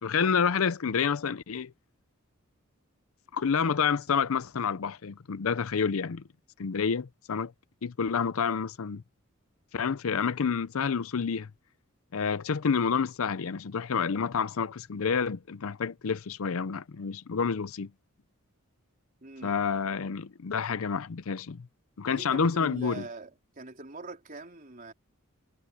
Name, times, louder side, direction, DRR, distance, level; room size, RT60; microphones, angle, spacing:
voice 1, 0.0-1.7 3.3-6.2 6.6-7.5 7.8-9.0 9.7-11.5 12.1-17.9 19.4-21.7 22.0-23.0, left 6 dB, 70° left, 0.6 m, -29 dB
voice 2, 19.2-19.6 22.1-24.9, right 2 dB, 40° right, 4.1 m, -43 dB
head